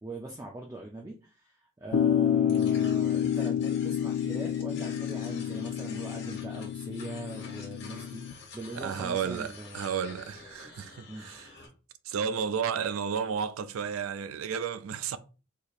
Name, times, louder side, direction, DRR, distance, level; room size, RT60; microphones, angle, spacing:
voice 1, 0.0-10.2 11.1-11.3 11.6-11.7, right 2 dB, 15° right, 0.4 m, -41 dB
sound 1, 1.9-8.3, left 9 dB, 80° left, 0.3 m, -29 dB
sound 2, 2.5-11.7, left 5 dB, 55° left, 1.2 m, -49 dB
voice 2, 8.7-11.5 12.0-15.2, right 7 dB, 80° right, 0.4 m, -32 dB
4.6 x 2.8 x 2.4 m
head